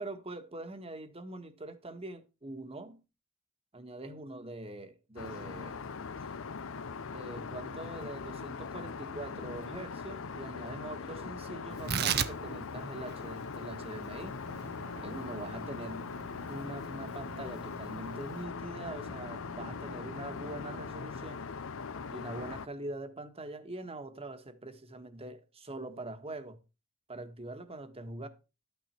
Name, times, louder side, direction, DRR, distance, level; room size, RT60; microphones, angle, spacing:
voice 1, 0.0-3.0 3.7-5.8 7.1-14.4 15.0-16.1 16.5-21.4 22.1-26.6 27.1-28.3, right 2 dB, 30° right, 1.5 m, -43 dB
Aircraft, 5.2-22.7, left 5 dB, 65° left, 0.7 m, -41 dB
Tearing, 11.7-18.4, right 8 dB, 50° right, 0.8 m, -38 dB
sound 1, 14.4-20.9, equal, 70° right, 1.1 m, -50 dB
12.5 x 9.2 x 4.4 m
head